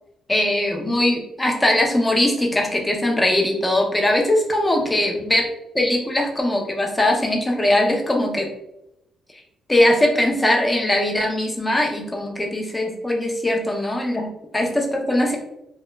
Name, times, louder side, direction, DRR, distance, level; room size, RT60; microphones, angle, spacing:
voice 1, 0.3-5.5 5.7-8.5 9.7-15.4, left 1 dB, 15° left, 1 dB, 0.6 m, -20 dB
2.2 x 2.1 x 3.0 m, 0.83 s
cardioid pair, 90°, 0 cm